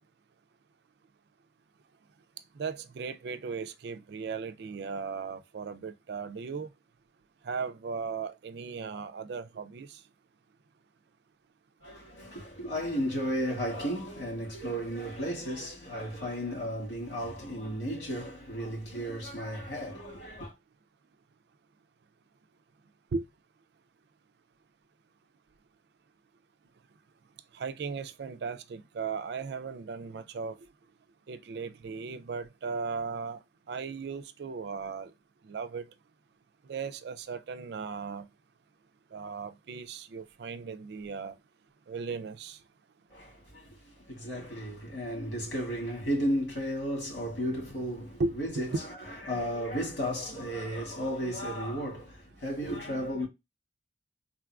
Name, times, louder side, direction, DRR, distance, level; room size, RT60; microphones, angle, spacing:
voice 1, 2.5-6.7 7.4-10.0 23.1-23.2 27.5-30.6 31.3-33.4 33.7-35.1 35.4-35.8 36.7-38.3 39.1-41.4 41.9-42.6 48.2-48.4, right 5 dB, 65° right, 0.3 m, -36 dB
voice 2, 11.8-20.5 43.1-53.3, equal, 75° left, 2.0 m, -34 dB
3.7 x 2.4 x 2.2 m
head